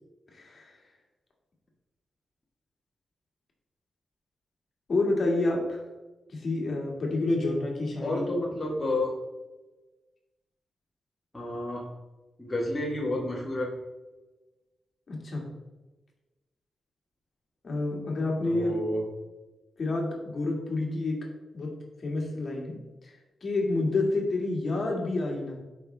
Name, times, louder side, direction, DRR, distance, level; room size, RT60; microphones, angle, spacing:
voice 1, 0.3-0.7 4.9-5.8 6.3-8.2 15.1-15.5 17.6-18.7 19.8-21.2 21.5-21.7 22.0-22.8 23.0-23.1 23.4-25.6, left 2 dB, 40° left, -1 dB, 2.0 m, -28 dB
voice 2, 8.0-9.2 11.3-11.9 12.4-13.7 18.5-19.0, left 1 dB, 10° left, -5 dB, 1.5 m, -30 dB
12.0 x 5.3 x 3.4 m, 1.1 s
wide cardioid pair, 160°, 0 cm